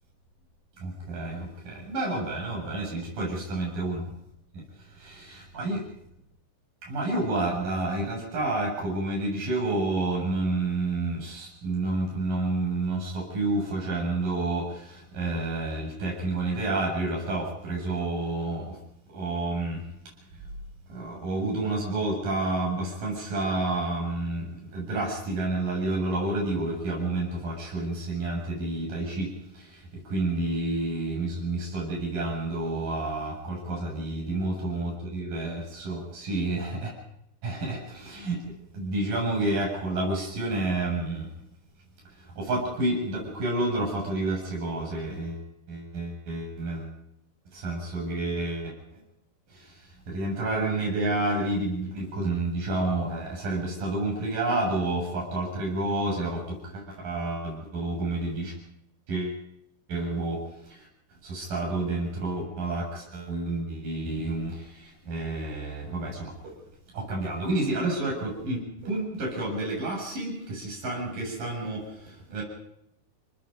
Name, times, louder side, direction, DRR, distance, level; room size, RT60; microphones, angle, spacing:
voice 1, 0.8-4.1 4.5-5.8 6.8-18.8 19.1-19.8 20.9-36.9 37.4-41.3 42.2-46.9 47.5-48.7 49.5-58.5 59.1-59.4 59.9-60.9 61.2-66.6 66.9-72.4, right 2 dB, 50° right, -2 dB, 9.1 m, -30 dB
29.0 x 20.0 x 5.3 m, 0.76 s
omnidirectional pair, 5.1 m